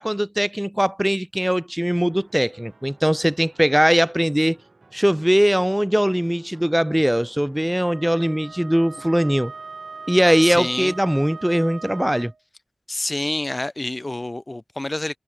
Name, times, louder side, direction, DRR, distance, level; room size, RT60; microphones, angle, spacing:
voice 1, 0.0-4.6 4.9-9.5 10.1-12.3, equal, 5° right, 0.4 m, -20 dB
sound 1, 2.1-11.7, right 3 dB, 55° right, 7.9 m, -54 dB
Wind instrument woodwind instrument, 7.8-12.4, right 4 dB, 75° right, 1.6 m, -39 dB
voice 2, 10.4-10.9 12.9-15.2, left 2 dB, 30° left, 1.6 m, -28 dB
wide cardioid pair, 65°, 0 cm